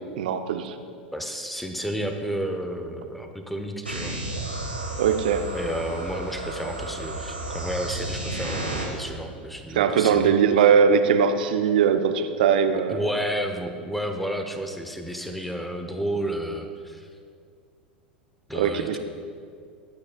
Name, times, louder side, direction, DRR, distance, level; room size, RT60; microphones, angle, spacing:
voice 1, 0.2-0.7 5.0-5.4 9.7-13.0 18.5-19.0, right 7 dB, 60° right, 8 dB, 0.8 m, -20 dB
voice 2, 1.1-4.2 5.5-10.4 12.9-17.1 18.5-19.0, equal, ahead, 5 dB, 1.1 m, -31 dB
sound 1, 3.8-8.8, right 2 dB, 90° right, 1.9 m, -32 dB
22.0 x 8.7 x 2.4 m, 2.2 s
figure-of-eight pair, 85°, 5 cm